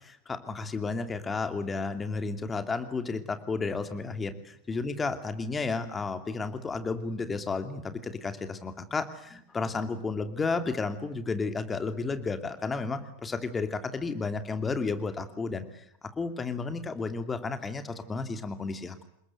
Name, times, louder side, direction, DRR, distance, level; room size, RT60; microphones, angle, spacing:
voice 1, 0.0-4.3 4.7-19.0, left 4 dB, 15° left, 9 dB, 2.7 m, -32 dB
28.0 x 21.5 x 9.3 m, 0.72 s
figure-of-eight pair, 90°, 0 cm